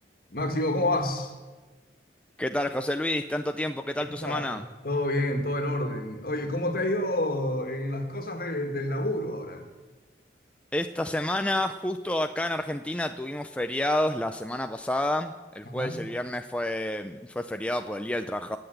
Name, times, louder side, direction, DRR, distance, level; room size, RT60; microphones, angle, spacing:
voice 1, 0.3-1.3 4.2-9.7 15.6-16.0, left 1 dB, 55° left, 5 dB, 2.1 m, -29 dB
voice 2, 2.4-4.6 10.7-18.6, left 1 dB, 5° left, 7 dB, 0.4 m, -29 dB
20.0 x 7.9 x 7.8 m, 1.3 s
head